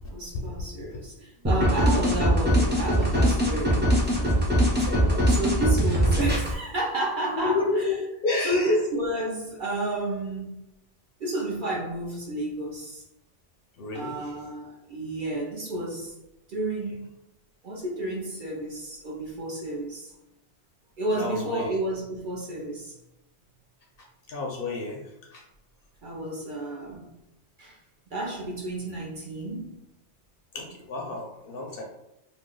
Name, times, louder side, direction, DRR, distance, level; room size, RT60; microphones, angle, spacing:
voice 1, 0.1-4.3 5.0-8.0 8.4-10.6 11.2-13.0 13.9-16.2 16.5-17.1 17.6-20.1 21.0-22.9 26.0-27.2 27.6-27.8 28.1-29.8, right 1 dB, 50° right, -3 dB, 0.7 m, -31 dB
sound 1, 1.4-6.5, equal, 20° right, 0.3 m, -22 dB
voice 2, 4.9-5.2 7.4-7.9 8.2-8.7 13.8-14.1 21.2-21.7 24.3-25.0 25.3-25.4 30.5-31.8, left 3 dB, 60° left, 0 dB, 0.7 m, -30 dB
2.6 x 2.2 x 3.6 m, 0.86 s
omnidirectional pair, 1.2 m